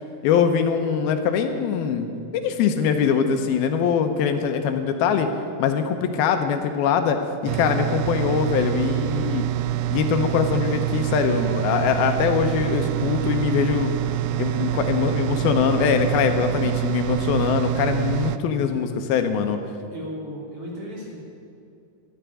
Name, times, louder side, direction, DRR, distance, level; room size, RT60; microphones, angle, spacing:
voice 1, 0.2-2.1 2.4-5.3 5.6-9.5 9.9-13.9 14.4-19.6, left 7 dB, 75° left, 7 dB, 2.5 m, -22 dB
sound 1, 7.5-18.4, right 14 dB, 80° right, 2.3 m, -26 dB
voice 2, 14.5-15.3 19.9-21.2, equal, 35° right, -4 dB, 3.7 m, -36 dB
12.5 x 10.5 x 9.0 m, 2.5 s
omnidirectional pair, 4.8 m